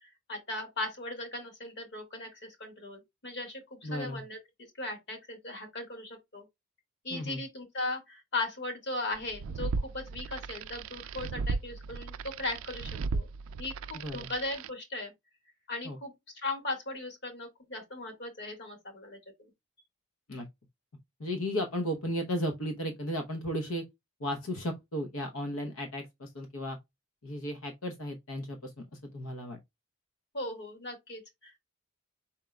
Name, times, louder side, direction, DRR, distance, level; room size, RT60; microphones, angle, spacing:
voice 1, 0.0-4.4 4.8-6.4 7.0-13.3 13.6-15.1 15.7-19.2 30.3-31.6, left 2 dB, 55° left, 1.8 m, -38 dB
voice 2, 3.8-4.2 7.1-7.4 13.9-14.3 15.8-16.0 20.3-20.5 21.2-23.8 24.2-26.8 27.2-29.6, equal, 75° left, 0.8 m, -35 dB
sound 1, 9.2-14.7, right 4 dB, 75° right, 0.3 m, -36 dB
5.0 x 4.3 x 2.2 m
head